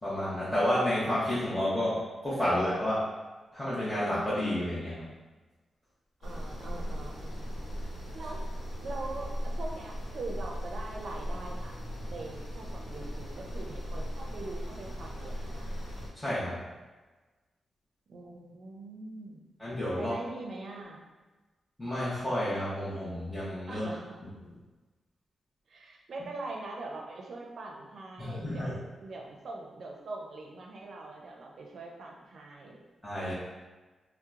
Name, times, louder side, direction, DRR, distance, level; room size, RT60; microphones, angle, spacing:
voice 1, 0.0-3.1 3.5-5.1 16.2-16.6 19.6-20.1 21.8-23.8 28.2-28.7 33.0-33.3, left 1 dB, 15° left, -11 dB, 0.8 m, -30 dB
sound 1, 6.2-16.1, equal, 80° left, 0.9 m, -38 dB
voice 2, 6.2-7.5 8.1-8.4 8.8-11.8 12.1-15.7 18.1-19.5 20.0-21.0 23.7-24.2 25.7-32.9, right 2 dB, 60° right, 0 dB, 0.5 m, -42 dB
2.9 x 2.0 x 3.5 m, 1.2 s
wide cardioid pair, 115°, 0 cm